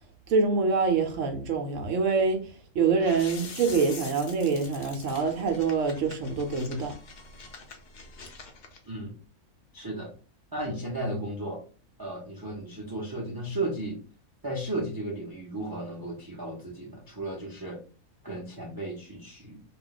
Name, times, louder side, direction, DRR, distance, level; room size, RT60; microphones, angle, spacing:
voice 1, 0.3-2.4 2.7-6.9, right 4 dB, 65° right, 0.9 m, -25 dB
sound 1, 3.0-8.8, left 4 dB, 80° left, 0.4 m, -45 dB
voice 2, 8.8-9.1 9.7-10.1 10.5-11.6 12.0-14.0 14.4-17.8 18.2-19.6, right 1 dB, 30° right, 0.4 m, -34 dB
2.4 x 2.2 x 3.7 m
omnidirectional pair, 1.5 m